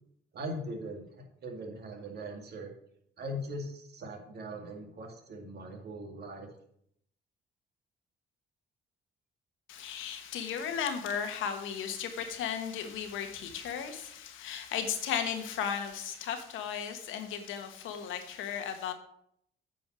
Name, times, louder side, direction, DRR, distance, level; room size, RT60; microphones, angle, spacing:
voice 1, 0.3-2.7 3.2-6.5, equal, 55° right, 3 dB, 2.2 m, -40 dB
voice 2, 9.7-18.9, left 8 dB, 90° left, 7 dB, 1.3 m, -35 dB
8.7 x 5.4 x 6.1 m, 0.70 s
cardioid pair, 90°, 20 cm